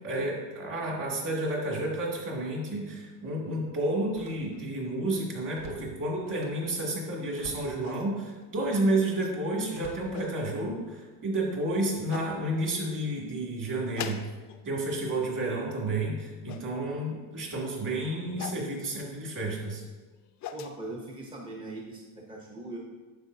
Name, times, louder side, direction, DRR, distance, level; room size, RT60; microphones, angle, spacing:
voice 1, 0.0-14.2 14.6-19.8, right 1 dB, 40° right, -3 dB, 2.5 m, -31 dB
Slam, 2.6-2.7 4.0-4.8 5.2-6.7 7.3-7.8 8.5-9.0 9.7-10.8 11.4-11.7, right 2 dB, 60° right, 1.3 m, -50 dB
sound 1, 7.8-8.4 9.2-9.4 9.9-10.3 11.4-11.5 12.1-12.3 13.9-14.6 14.9-15.3 16.5-16.7 18.4-18.7 20.1-20.8, left 9 dB, 40° left, 0.4 m, -41 dB
voice 2, 20.5-22.8, right 2 dB, 10° right, -2 dB, 0.7 m, -40 dB
9.5 x 6.7 x 2.7 m, 1.3 s
cardioid pair, 135°, 48 cm